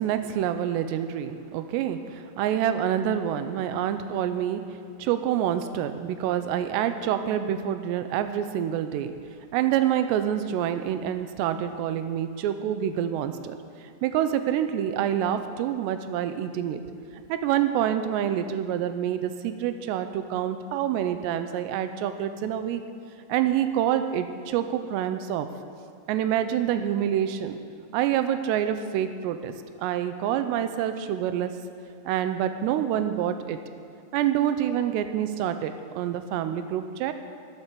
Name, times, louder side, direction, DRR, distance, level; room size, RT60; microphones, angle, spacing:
voice 1, 0.0-9.1 9.5-16.8 17.1-22.8 23.3-25.5 26.1-27.6 27.9-29.5 29.8-31.5 32.1-33.6 34.1-37.1, right 10 dB, 85° right, 9 dB, 2.5 m, -27 dB
12.0 x 12.0 x 6.8 m, 2.4 s
omnidirectional pair, 5.6 m